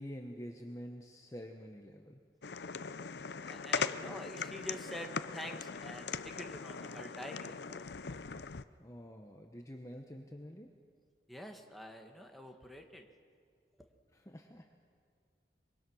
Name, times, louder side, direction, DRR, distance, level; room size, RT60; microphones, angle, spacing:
voice 1, 0.0-2.2 8.8-10.7 14.1-14.7, equal, 15° left, 3 dB, 1.1 m, -47 dB
sound 1, 2.4-8.6, left 5 dB, 65° left, 0.6 m, -40 dB
voice 2, 3.4-7.6 11.3-13.1, equal, ahead, 3 dB, 1.6 m, -47 dB
24.5 x 23.0 x 6.4 m, 2.1 s
head